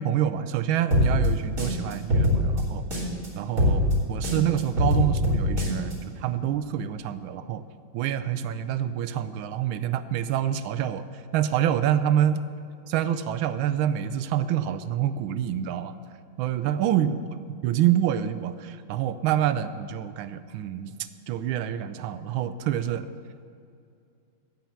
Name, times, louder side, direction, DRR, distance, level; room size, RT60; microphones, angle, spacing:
voice 1, 0.0-3.1 3.4-7.6 7.9-11.1 11.3-12.4 12.9-15.9 16.4-17.1 17.6-23.1, right 10 dB, 85° right, 11 dB, 1.4 m, -27 dB
sound 1, 0.9-3.3 3.6-5.9, left 1 dB, 40° right, 3.1 m, -23 dB
16.5 x 5.8 x 7.5 m, 2.5 s
omnidirectional pair, 2.2 m